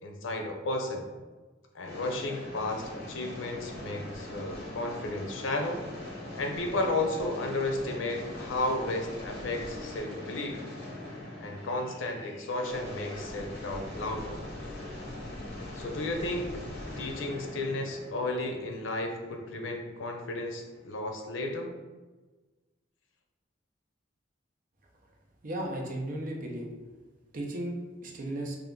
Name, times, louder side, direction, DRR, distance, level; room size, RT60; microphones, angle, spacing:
voice 1, 0.0-1.0 1.7-5.8 6.3-10.6 11.4-14.4 15.7-16.5 17.0-21.7, left 2 dB, 90° left, 3 dB, 0.6 m, -33 dB
sound 1, 1.8-20.9, left 1 dB, 60° left, 1.1 m, -42 dB
voice 2, 25.4-26.7 27.3-27.7 28.0-28.6, right 1 dB, 45° right, 0 dB, 0.6 m, -35 dB
3.4 x 2.4 x 3.7 m, 1.2 s
head